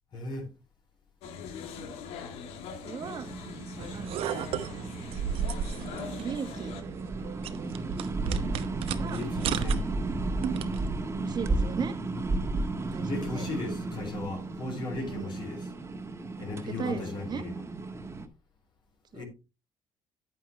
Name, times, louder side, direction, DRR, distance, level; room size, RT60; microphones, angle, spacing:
voice 1, 0.1-0.5 9.1-9.8 13.1-15.7 16.4-17.6 19.1-19.2, left 3 dB, 50° left, 3.8 m, -36 dB
sound 1, 1.2-6.8, left 6 dB, 85° left, 1.6 m, -42 dB
voice 2, 2.8-3.3 3.9-4.3 5.9-6.7 9.0-9.7 11.2-11.9 12.9-13.5 15.0-15.3 16.4-17.4 19.1-19.2, right 6 dB, 45° right, 1.4 m, -37 dB
sound 2, 3.0-18.3, right 2 dB, 25° right, 1.5 m, -34 dB
sound 3, 3.8-10.9, right 8 dB, 70° right, 0.9 m, -35 dB
9.3 x 9.0 x 3.3 m
cardioid pair, 100°, 10 cm